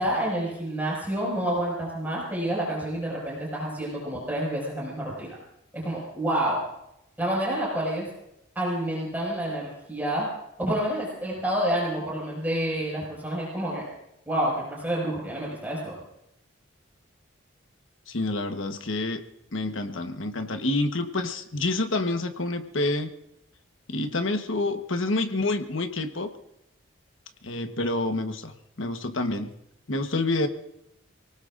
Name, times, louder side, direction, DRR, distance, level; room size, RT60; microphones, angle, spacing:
voice 1, 0.0-5.4 5.7-6.6 7.2-8.1 8.5-10.3 10.6-13.9 14.3-16.0, right 1 dB, 10° right, -4 dB, 5.8 m, -28 dB
voice 2, 18.1-19.2 19.5-23.1 23.9-26.3 27.4-29.5 29.9-30.5, left 2 dB, 75° left, 7 dB, 1.3 m, -28 dB
28.0 x 18.5 x 2.6 m, 0.83 s
head